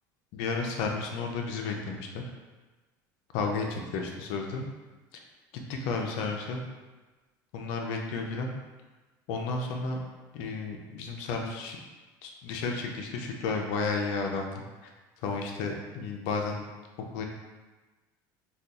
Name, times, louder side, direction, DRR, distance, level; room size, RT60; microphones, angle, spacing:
voice 1, 0.3-2.2 3.3-4.7 5.5-6.6 7.5-8.6 9.3-10.0 10.3-11.8 12.2-14.9 15.2-16.6 17.1-17.3, left 4 dB, 70° left, 2 dB, 0.5 m, -32 dB
2.6 x 2.3 x 3.5 m, 1.2 s
supercardioid pair, 90°, 10 cm